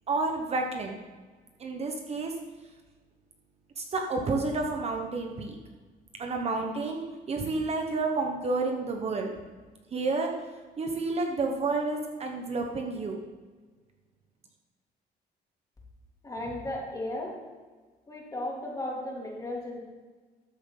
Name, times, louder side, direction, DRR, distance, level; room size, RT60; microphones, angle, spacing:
voice 1, 0.1-1.0 1.6-2.3 3.8-5.6 6.2-9.3 9.9-10.3 10.8-13.2, right 3 dB, 40° right, 2 dB, 1.2 m, -30 dB
voice 2, 16.2-17.3 18.1-19.8, left 1 dB, 20° left, -3 dB, 3.2 m, -35 dB
13.0 x 7.6 x 4.1 m, 1.4 s
cardioid pair, 110°, 17 cm